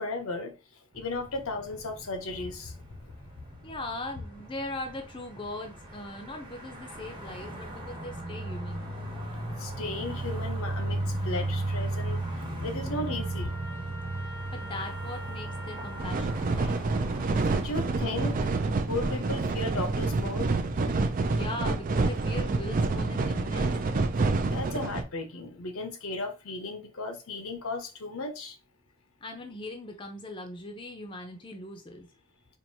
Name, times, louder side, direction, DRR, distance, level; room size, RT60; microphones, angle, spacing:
voice 1, 0.0-2.7 3.0-3.1 9.6-13.6 17.4-18.5 18.9-20.6 24.5-28.6, left 2 dB, 70° left, 0.7 m, -35 dB
sound 1, 0.9-18.5, right 2 dB, 20° right, 0.9 m, -36 dB
voice 2, 3.6-8.9 14.2-16.9 21.3-23.8 29.2-32.1, left 2 dB, 20° left, 0.6 m, -40 dB
Trumpet, 13.1-16.4, equal, 75° right, 1.1 m, -45 dB
sound 2, 16.0-25.0, right 3 dB, 40° right, 0.3 m, -28 dB
4.5 x 2.5 x 2.7 m
head